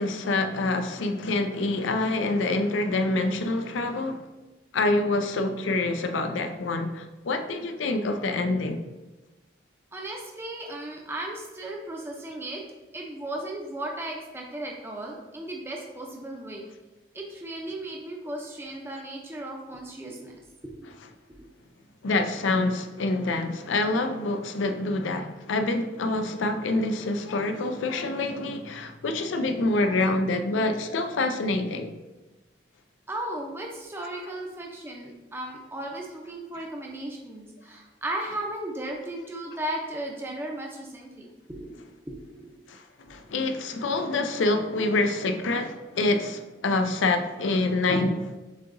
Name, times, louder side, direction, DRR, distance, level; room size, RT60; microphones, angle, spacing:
voice 1, 0.0-4.2 4.7-8.8 22.0-31.9 42.7-48.4, left 2 dB, 85° left, 0.5 m, -26 dB
voice 2, 9.9-12.6 12.9-16.6 17.1-20.3 20.7-20.9 21.3-21.5 33.1-41.8 42.1-42.5, right 1 dB, 10° right, 0.5 m, -36 dB
7.3 x 2.8 x 2.6 m
head